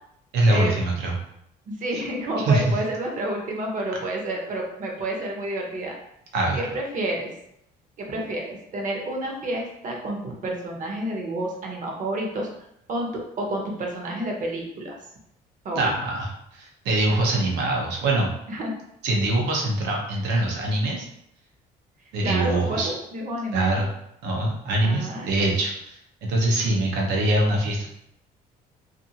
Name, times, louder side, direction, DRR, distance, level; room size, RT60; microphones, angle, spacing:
voice 1, 0.3-1.1 2.4-2.6 6.3-6.6 15.7-18.3 19.0-21.1 22.1-22.9 23.5-23.9 24.2-27.9, right 2 dB, 85° right, -1 dB, 0.8 m, -23 dB
voice 2, 1.7-5.9 6.5-7.3 8.0-12.5 12.9-15.0 15.6-15.9 18.5-18.8 22.2-23.8 24.8-25.3, right 1 dB, 50° right, 1 dB, 0.8 m, -29 dB
2.6 x 2.5 x 2.7 m, 0.77 s
cardioid pair, 110°, 17 cm